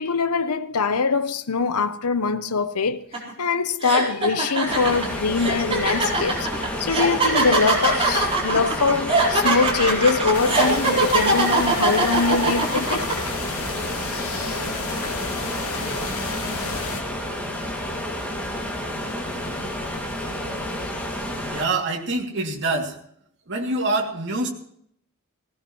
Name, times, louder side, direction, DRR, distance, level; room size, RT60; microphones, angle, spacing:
voice 1, 0.0-3.0 3.4-6.5 6.8-13.1, left 4 dB, 85° left, 0.9 m, -23 dB
sound 1, 3.1-3.3 3.8-13.1, right 2 dB, 25° right, 4.2 m, -21 dB
sound 2, 4.7-21.6, left 1 dB, 10° left, 2.3 m, -30 dB
sound 3, 10.3-17.0, left 3 dB, 70° left, 2.9 m, -32 dB
voice 2, 21.5-23.0 23.5-24.5, right 2 dB, 55° right, 2.7 m, -25 dB
19.0 x 18.0 x 3.2 m
head